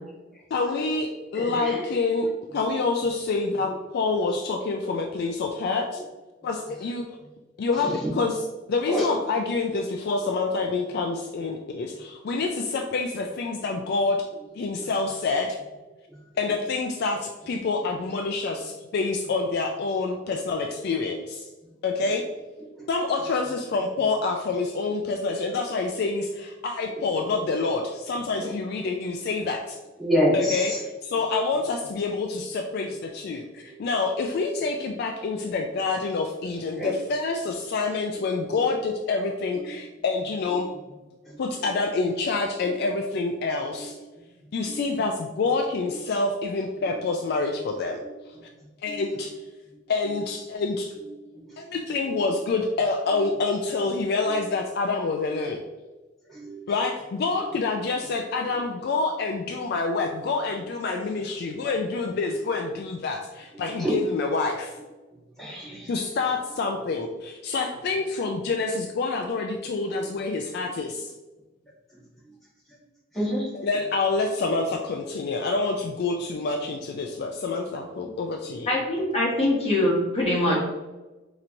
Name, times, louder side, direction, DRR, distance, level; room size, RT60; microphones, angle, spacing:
voice 1, 0.5-6.0 6.4-7.0 7.6-14.3 14.6-15.6 16.4-21.5 21.8-22.2 22.9-29.8 30.3-40.7 41.4-44.0 44.5-48.0 48.8-49.3 49.9-50.9 51.6-55.6 56.7-64.7 65.9-71.1 73.5-78.7, left 3 dB, 55° left, 3 dB, 0.3 m, -27 dB
voice 2, 1.3-1.8 8.9-9.0 28.4-28.5 30.0-30.8 36.8-36.9 44.7-44.8 48.9-49.0 56.4-56.6 63.8-63.9 65.4-65.9 73.1-73.5, equal, ahead, -8 dB, 1.3 m, -26 dB
voice 3, 78.7-80.6, left 1 dB, 30° left, -4 dB, 1.2 m, -23 dB
4.3 x 2.9 x 2.5 m, 1.1 s
head